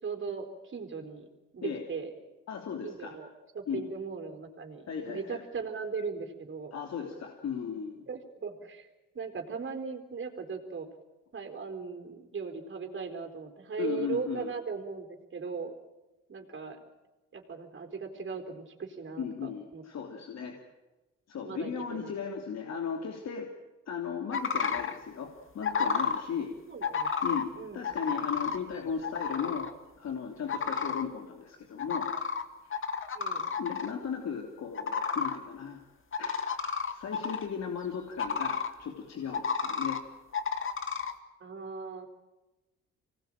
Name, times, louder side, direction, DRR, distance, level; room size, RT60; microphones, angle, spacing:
voice 1, 0.0-1.3 1.5-2.1 2.8-3.3 3.5-6.7 8.1-8.9 9.1-10.9 11.3-15.7 16.3-16.8 17.3-19.8 21.4-22.1 26.7-27.8 33.1-33.5 41.4-42.1, right 5 dB, 40° right, 5 dB, 4.3 m, -38 dB
voice 2, 2.5-3.2 3.7-3.9 4.9-5.4 6.7-8.0 13.8-14.5 19.2-20.6 21.3-23.5 23.9-26.5 27.2-27.5 27.7-29.7 30.0-32.1 32.6-32.8 33.6-35.8 36.2-40.0, left 7 dB, 60° left, 2 dB, 3.3 m, -36 dB
sound 1, 24.3-25.0 25.6-26.2 26.8-27.4 27.8-28.6 29.0-29.7 30.5-31.0 31.8-32.4 32.7-33.9 34.7-35.4 36.1-37.5 38.2-38.7 39.3-40.0 40.3-41.1, left 6 dB, 45° left, 2.1 m, -31 dB
25.0 x 19.5 x 9.1 m, 1.1 s
cardioid pair, 90°, 30 cm